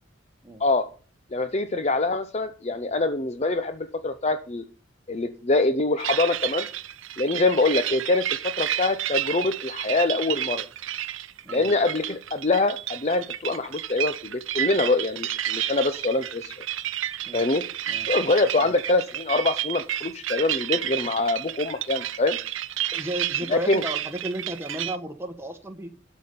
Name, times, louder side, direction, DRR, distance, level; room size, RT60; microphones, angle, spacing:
voice 1, 1.3-4.6 5.1-6.7 7.2-8.2 8.6-10.7 11.5-16.7 17.3-17.6 18.0-22.4 23.5-23.8, left 2 dB, 35° left, 9 dB, 0.6 m, -24 dB
sound 1, 6.0-25.0, right 12 dB, 75° right, 0.6 m, -31 dB
voice 2, 22.9-26.0, right 1 dB, 10° right, 5 dB, 1.3 m, -34 dB
12.0 x 5.5 x 6.8 m, 0.39 s
head